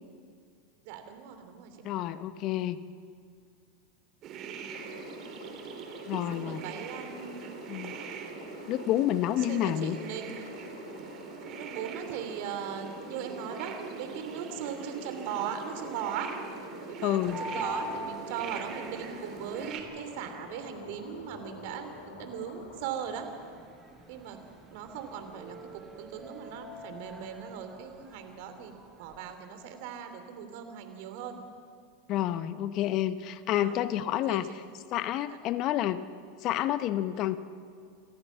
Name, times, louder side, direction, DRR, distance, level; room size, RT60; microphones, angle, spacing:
voice 1, 0.8-1.8 6.3-7.5 9.4-10.4 11.6-16.3 16.9-23.3 24.1-24.4 24.7-31.4 33.5-33.8 34.3-34.4 35.3-35.4, right 8 dB, 60° right, 7 dB, 2.9 m, -39 dB
voice 2, 1.8-2.8 6.1-6.6 7.7-8.0 8.7-10.0 17.0-17.4 32.1-34.6 34.9-36.0 36.4-37.4, left 12 dB, 50° left, 13 dB, 1.0 m, -29 dB
sound 1, 4.2-19.8, right 7 dB, 45° right, 2.8 m, -42 dB
sound 2, 4.7-22.8, left 5 dB, 75° left, 2.9 m, -48 dB
sound 3, 17.2-29.2, left 1 dB, 15° right, 5.0 m, -45 dB
28.0 x 14.0 x 7.3 m, 2.2 s
hypercardioid pair, 95°, 0 cm